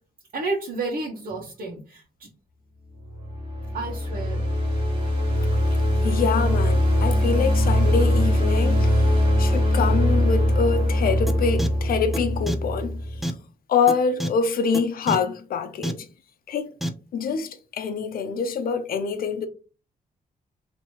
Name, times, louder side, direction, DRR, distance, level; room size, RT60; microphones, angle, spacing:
voice 1, 0.3-2.0 3.7-4.4, right 3 dB, 65° right, 1.1 m, -30 dB
sound 1, 3.0-13.2, equal, 35° right, 1.6 m, -22 dB
voice 2, 6.0-9.1 9.4-13.3 13.7-16.1 16.5-16.7 17.1-19.5, left 5 dB, 70° left, 0.7 m, -25 dB
sound 2, 11.3-11.4 11.6-11.7 12.1-12.2 12.5-12.6 13.2-13.3 13.9-14.0 14.2-14.3 14.7-14.8 15.1-15.2 15.8-15.9 16.8-16.9, equal, ahead, 0.4 m, -26 dB
3.0 x 2.9 x 4.4 m
wide cardioid pair, 125°, 16 cm